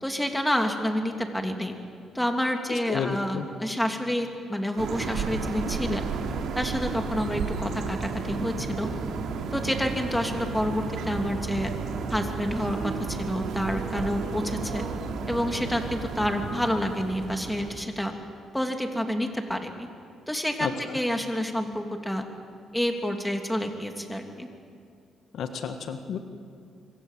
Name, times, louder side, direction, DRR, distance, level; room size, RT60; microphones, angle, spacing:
voice 1, 0.0-1.7 2.1-6.1 6.5-8.9 9.5-11.7 12.1-14.8 15.3-18.1 18.5-19.9 20.3-22.2 22.7-24.5, equal, 5° left, 4 dB, 2.9 m, -28 dB
voice 2, 2.9-3.4 20.6-21.0 25.3-26.2, left 6 dB, 70° left, 7 dB, 1.7 m, -31 dB
sound 1, 4.8-17.8, right 5 dB, 75° right, 3.0 m, -32 dB
25.0 x 25.0 x 7.6 m, 2.3 s
cardioid pair, 90°, 0 cm